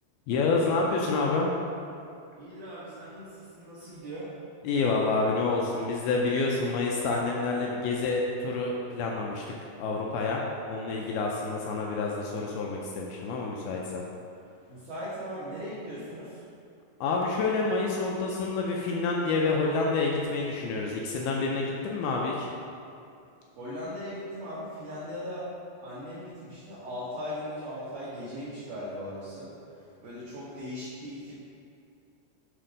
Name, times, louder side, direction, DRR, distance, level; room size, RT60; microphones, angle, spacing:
voice 1, 0.3-1.6 4.6-9.5 9.8-10.4 10.7-14.0 17.0-22.5, left 3 dB, 80° left, -1 dB, 2.3 m, -28 dB
voice 2, 2.4-4.3 14.7-16.4 23.6-25.5 25.8-31.3, equal, 60° right, -11 dB, 2.6 m, -39 dB
7.5 x 4.3 x 5.1 m, 2.6 s
omnidirectional pair, 4.9 m